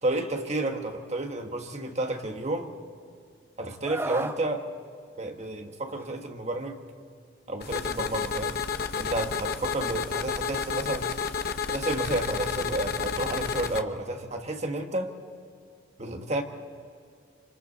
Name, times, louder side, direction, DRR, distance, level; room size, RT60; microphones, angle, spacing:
voice 1, 0.0-2.7 3.6-4.7 5.2-6.8 7.5-8.6 9.0-11.1 11.7-15.1 16.0-16.4, right 2 dB, 35° right, 4 dB, 1.5 m, -31 dB
Screaming, 3.8-4.4 5.9-6.1, right 1 dB, 10° right, 0.5 m, -33 dB
sound 1, 7.6-13.8, left 6 dB, 50° left, 0.8 m, -31 dB
27.0 x 25.5 x 4.2 m, 2.3 s
head